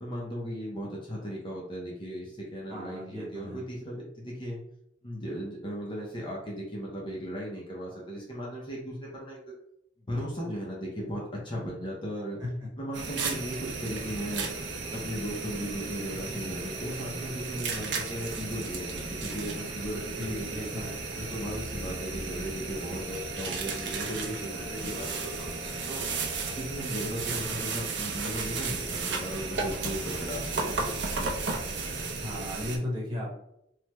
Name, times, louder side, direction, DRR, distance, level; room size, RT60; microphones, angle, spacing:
voice 1, 0.0-4.6 5.0-9.5 10.1-12.4 12.8-14.5 14.9-20.7 21.2-25.5 25.9-26.0 26.6-31.3, equal, 25° left, -3 dB, 0.6 m, -37 dB
voice 2, 2.7-3.6 12.4-12.5 20.2-21.0 32.2-33.3, left 1 dB, 25° right, -5 dB, 1.0 m, -35 dB
sound 1, 12.9-32.8, right 4 dB, 70° right, 0.5 m, -34 dB
Brass instrument, 22.7-26.8, left 6 dB, 5° left, 1.0 m, -50 dB
3.2 x 2.1 x 3.0 m, 0.79 s
head